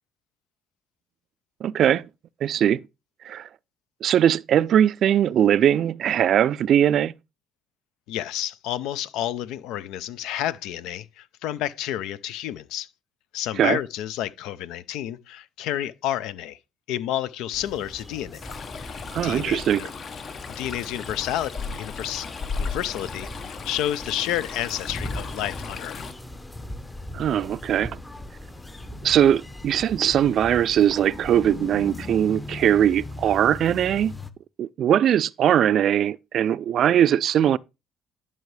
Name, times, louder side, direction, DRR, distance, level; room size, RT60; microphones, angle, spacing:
voice 1, 1.6-2.1 2.4-2.8 3.2-3.5 4.0-7.1 13.6-13.8 19.1-19.8 27.1-28.0 29.0-34.1 34.6-37.6, right 10 dB, 60° right, 0.3 m, -20 dB
voice 2, 8.1-12.9 13.3-16.6 16.9-19.9 20.6-22.3 22.6-26.0, left 12 dB, 80° left, 0.5 m, -30 dB
sound 1, 17.5-34.3, left 2 dB, 15° left, 0.8 m, -39 dB
Stream, 18.4-26.1, left 5 dB, 50° left, 0.9 m, -36 dB
10.5 x 5.5 x 3.2 m
supercardioid pair, 75°, 0 cm